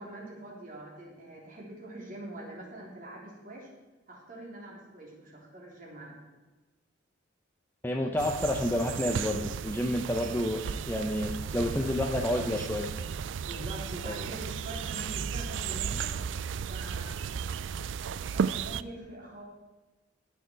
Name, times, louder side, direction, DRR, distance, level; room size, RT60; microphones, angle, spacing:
voice 1, 0.0-3.7 4.1-6.1 13.4-16.1 16.7-17.3 18.3-19.4, right 1 dB, 45° right, -3 dB, 3.5 m, -44 dB
voice 2, 7.8-12.9 14.1-14.3, left 1 dB, 10° left, 1 dB, 0.7 m, -30 dB
sound 1, 8.2-18.8, right 7 dB, 80° right, 0.4 m, -34 dB
18.5 x 6.4 x 4.6 m, 1.2 s
head